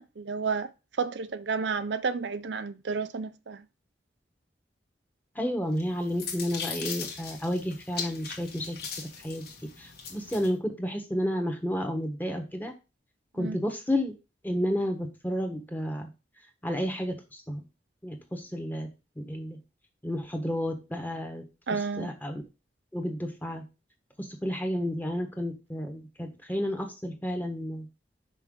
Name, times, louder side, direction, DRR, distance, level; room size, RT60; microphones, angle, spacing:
voice 1, 0.0-3.6 13.4-13.6 21.7-22.1, right 5 dB, 80° right, 0.5 m, -31 dB
voice 2, 5.3-12.7 13.3-14.1 14.4-16.1 16.6-17.6 18.0-18.9 19.2-19.6 20.0-21.5 21.7-22.4 22.9-23.6 24.2-27.9, equal, 10° left, 1.2 m, -31 dB
sound 1, 5.8-10.5, left 6 dB, 60° left, 1.5 m, -39 dB
5.8 x 5.6 x 3.7 m
head